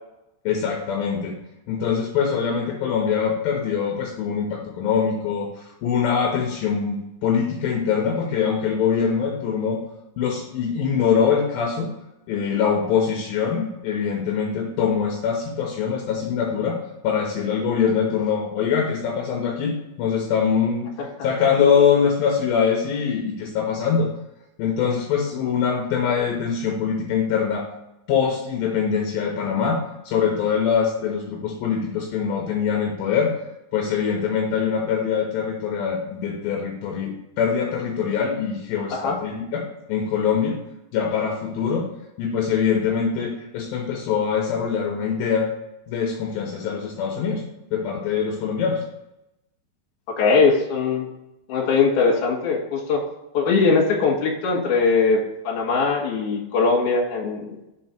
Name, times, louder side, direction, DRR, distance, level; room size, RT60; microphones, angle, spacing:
voice 1, 0.5-1.4 1.7-9.8 10.2-11.9 12.3-20.9 21.2-24.2 24.6-27.7 28.1-33.4 33.7-40.6 40.9-41.9 42.2-45.5 45.9-47.4 47.7-48.8, left 6 dB, 80° left, 0 dB, 2.1 m, -23 dB
voice 2, 50.1-51.1 51.5-53.0 53.3-57.6, left 4 dB, 60° left, -2 dB, 2.4 m, -21 dB
6.2 x 4.6 x 4.3 m, 0.92 s
omnidirectional pair, 5.2 m